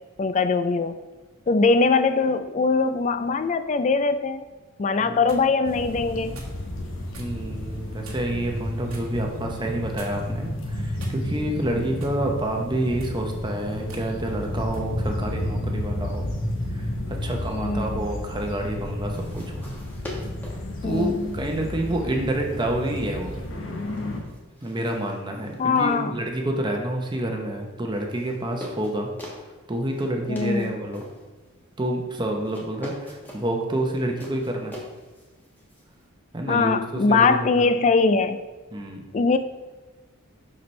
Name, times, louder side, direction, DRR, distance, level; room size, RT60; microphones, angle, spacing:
voice 1, 0.2-0.9 1.5-4.5 4.8-6.4 17.5-18.1 20.8-21.3 25.6-26.1 30.3-30.7 36.5-38.4 39.1-39.4, left 4 dB, 35° left, 10 dB, 0.3 m, -22 dB
sound 1, 4.9-5.5 6.3-6.6 7.1-7.3 8.0-8.4 8.9-9.1 10.0-10.4 11.0-11.5 12.0-12.2 12.9-13.2 13.9-14.1 14.7-14.9, right 3 dB, 85° right, 1.3 m, -44 dB
voice 2, 5.0-5.4 7.2-16.3 16.7-19.6 20.8-23.4 24.6-29.1 29.7-31.0 31.8-34.7 36.3-37.7 38.7-39.1, right 1 dB, 20° right, 2 dB, 0.7 m, -28 dB
sound 2, 5.6-24.2, left 1 dB, 65° left, 1.2 m, -32 dB
sound 3, 19.1-36.1, left 1 dB, 10° left, 1.2 m, -45 dB
6.9 x 5.9 x 3.2 m, 1.3 s
head